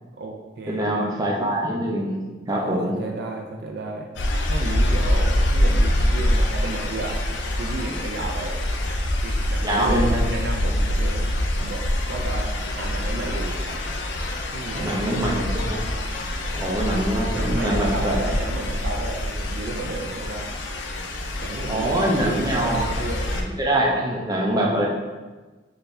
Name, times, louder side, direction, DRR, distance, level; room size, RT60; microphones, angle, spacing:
voice 1, 0.2-1.1 2.5-4.1 4.5-7.2 7.6-8.6 9.2-11.3 11.6-13.6 14.5-15.4 17.3-20.6 21.4-23.3, right 2 dB, 65° right, 1 dB, 0.4 m, -32 dB
voice 2, 0.7-2.2 2.5-3.0 9.6-10.2 14.8-15.8 16.5-18.1 21.7-22.8 23.3-24.9, right 1 dB, 20° right, -2 dB, 0.6 m, -24 dB
sound 1, 4.2-23.4, left 1 dB, 80° left, 0.5 m, -25 dB
4.4 x 2.7 x 3.2 m, 1.3 s
head